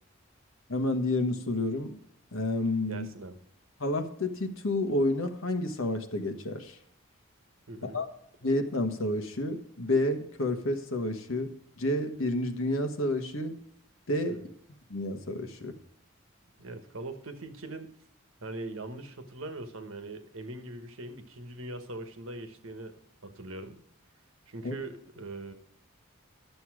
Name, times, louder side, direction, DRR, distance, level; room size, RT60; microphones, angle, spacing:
voice 1, 0.7-2.0 2.3-3.1 3.8-6.8 7.8-8.1 8.4-13.6 14.1-14.4 14.9-15.8 24.6-24.8, left 1 dB, 75° left, 6 dB, 1.3 m, -30 dB
voice 2, 2.9-3.4 7.7-8.0 14.3-14.5 16.6-17.9 18.4-23.0 23.2-23.8 24.5-25.5, right 2 dB, 80° right, 7 dB, 1.3 m, -41 dB
11.5 x 7.0 x 4.8 m, 0.72 s
head